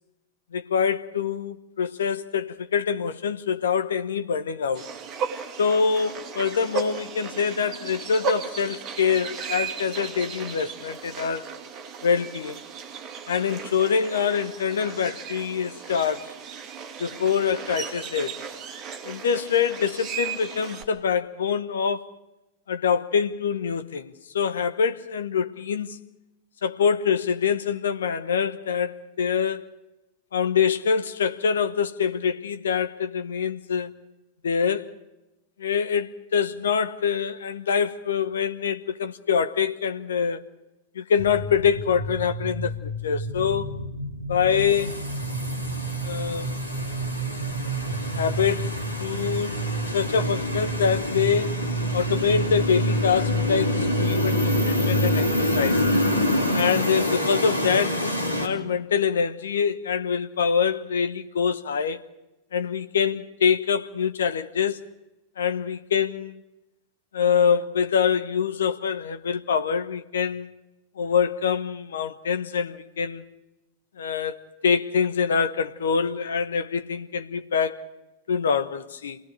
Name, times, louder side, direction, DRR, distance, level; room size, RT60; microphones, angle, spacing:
voice 1, 0.5-4.9 5.6-11.5 12.0-12.6 13.3-16.3 17.0-18.4 19.0-22.1 22.7-26.0 26.6-29.7 30.3-33.9 34.4-34.9 35.6-40.4 40.9-43.7 44.3-45.0 46.0-46.6 48.2-49.5 49.9-51.6 51.9-55.9 56.5-62.0 62.5-64.8 65.4-66.4 67.1-70.5 71.0-73.2 74.0-77.9 78.3-79.2, left 6 dB, 65° left, 1.1 m, -25 dB
sound 1, 4.7-20.8, right 6 dB, 30° right, 2.4 m, -35 dB
sound 2, 41.2-57.1, right 2 dB, 80° right, 1.6 m, -30 dB
sound 3, 44.5-58.5, left 1 dB, 80° left, 2.8 m, -27 dB
27.5 x 20.0 x 4.9 m
figure-of-eight pair, 90°, 0 cm